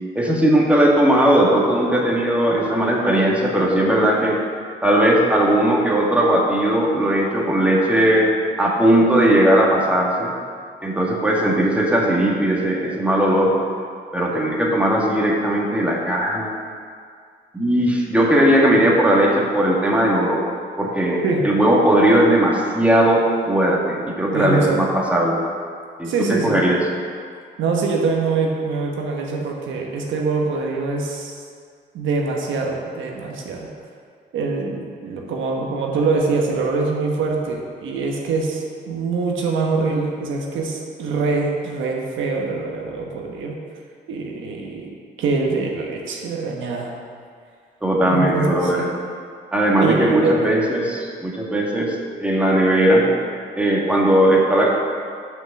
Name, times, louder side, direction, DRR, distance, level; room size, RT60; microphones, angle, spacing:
voice 1, 0.1-4.4 4.8-8.3 8.6-10.3 10.8-13.5 14.1-16.5 17.5-20.5 20.8-25.4 26.0-26.8 47.8-49.0 49.5-53.1 53.6-54.8, right 1 dB, 5° right, -3 dB, 1.5 m, -18 dB
voice 2, 24.3-24.8 26.0-26.6 27.6-31.4 31.9-33.7 34.3-43.6 44.1-46.9 48.0-48.9 49.8-50.4, right 4 dB, 80° right, 0 dB, 1.2 m, -24 dB
6.1 x 5.4 x 7.0 m, 2.1 s
cardioid pair, 90°, 20 cm